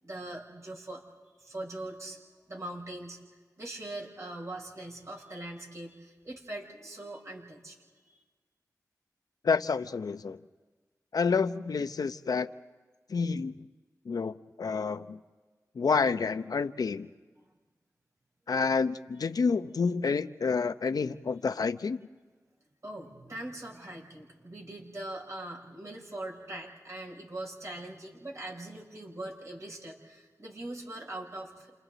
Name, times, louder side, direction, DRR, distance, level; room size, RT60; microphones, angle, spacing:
voice 1, 0.0-1.0 1.4-2.2 2.5-3.2 3.6-7.8 8.0-8.2 17.4-17.5 22.8-31.7, right 1 dB, 55° right, -2 dB, 6.5 m, -41 dB
voice 2, 9.4-10.4 11.1-12.5 13.1-13.5 14.1-15.2 15.8-17.1 18.5-22.0, left 5 dB, 80° left, 11 dB, 0.7 m, -29 dB
30.0 x 28.5 x 4.0 m, 1.4 s
wide cardioid pair, 65°, 6 cm